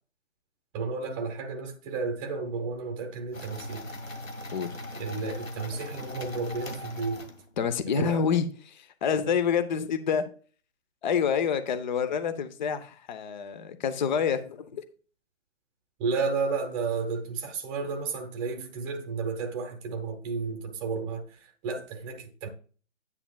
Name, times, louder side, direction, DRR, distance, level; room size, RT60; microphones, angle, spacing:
voice 1, 0.7-3.9 4.9-7.2 7.9-8.3 16.0-22.5, right 4 dB, 15° right, 0.9 m, -32 dB
sound 1, 3.3-7.7, left 1 dB, 80° left, 2.0 m, -39 dB
voice 2, 7.6-10.2 11.0-14.8, left 7 dB, 35° left, 0.8 m, -27 dB
9.8 x 9.2 x 2.3 m
figure-of-eight pair, 140°, 39 cm